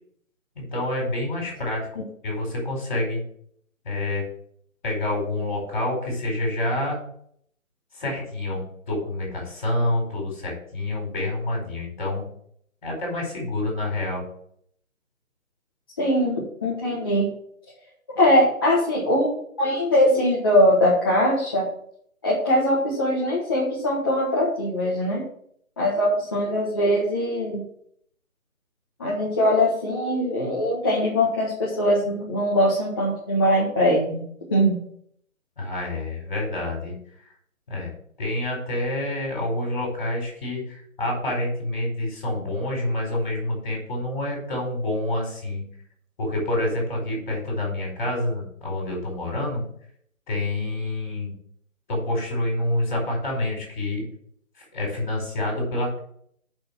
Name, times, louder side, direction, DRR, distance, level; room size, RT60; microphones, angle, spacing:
voice 1, 0.5-3.2 3.8-4.2 4.8-7.0 7.9-12.2 12.8-14.2 35.6-37.0 37.7-37.9 38.2-45.6 46.2-49.6 50.3-51.3 51.9-54.0 54.6-56.0, left 1 dB, 35° left, 0 dB, 4.8 m, -27 dB
voice 2, 16.0-17.3 18.2-21.6 22.2-25.2 25.8-27.6 29.0-34.2 34.5-34.8, equal, 15° left, -7 dB, 1.3 m, -21 dB
6.8 x 6.0 x 7.3 m, 0.65 s
figure-of-eight pair, 170°, 41 cm